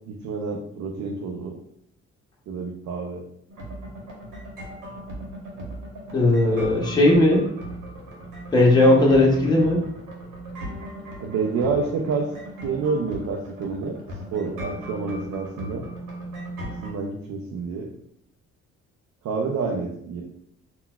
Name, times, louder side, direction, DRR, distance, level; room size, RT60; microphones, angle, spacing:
voice 1, 0.1-1.5 2.5-3.2 11.2-12.3 12.6-14.0 14.3-15.8 16.8-17.9 19.2-20.2, right 4 dB, 65° right, 0 dB, 0.5 m, -28 dB
sound 1, 3.5-16.9, right 1 dB, 85° right, 1.0 m, -37 dB
voice 2, 6.1-7.4 8.5-9.8, left 1 dB, 15° left, -2 dB, 0.7 m, -17 dB
3.8 x 2.2 x 2.2 m, 0.74 s
cardioid pair, 90°, 30 cm